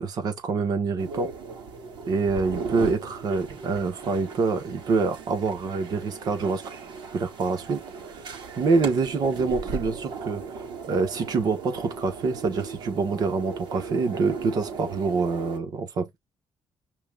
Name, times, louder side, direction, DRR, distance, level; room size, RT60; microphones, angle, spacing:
voice 1, 0.0-1.3 2.1-6.6 7.1-7.8 8.1-8.2 8.6-10.4 10.9-16.2, right 4 dB, 50° right, 1.6 m, -26 dB
sound 1, 1.0-15.6, right 4 dB, 70° right, 4.1 m, -37 dB
5.6 x 3.6 x 2.5 m
cardioid pair, 160°, 8 cm